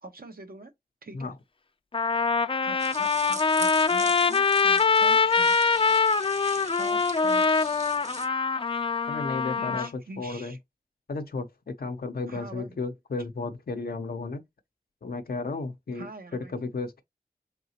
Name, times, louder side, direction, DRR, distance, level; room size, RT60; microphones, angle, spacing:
voice 1, 0.0-0.7 1.0-1.3 2.6-5.8 6.7-8.1 9.6-10.6 12.3-12.8 15.9-16.6, right 2 dB, 80° right, 0.9 m, -44 dB
Trumpet, 1.2-1.3 1.9-9.9, left 4 dB, 35° left, 0.4 m, -24 dB
sound 1, 2.8-8.3, right 2 dB, 50° right, 1.1 m, -41 dB
voice 2, 9.1-10.6 11.1-14.4 15.0-16.1 16.3-17.0, left 3 dB, 90° left, 0.6 m, -33 dB
4.7 x 3.6 x 2.8 m
wide cardioid pair, 40°, 15 cm